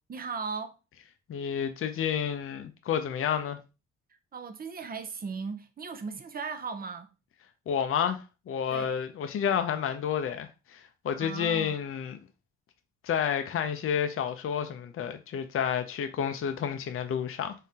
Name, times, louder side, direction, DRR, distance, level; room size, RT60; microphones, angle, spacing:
voice 1, 0.1-0.8 4.3-7.1 8.7-8.9 11.2-11.8, right 5 dB, 30° right, 0.6 m, -37 dB
voice 2, 1.3-3.6 7.7-12.2 13.0-17.5, left 8 dB, 45° left, 0.6 m, -30 dB
3.7 x 3.6 x 2.8 m
cardioid pair, 90°, 30 cm